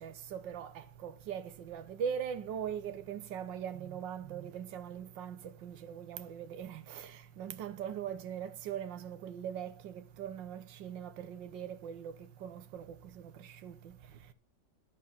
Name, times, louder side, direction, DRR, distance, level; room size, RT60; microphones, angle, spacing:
voice 1, 0.0-12.1 12.4-12.9 13.4-13.9, right 8 dB, 80° right, 1.7 m, -41 dB
10.5 x 8.6 x 5.5 m
omnidirectional pair, 2.0 m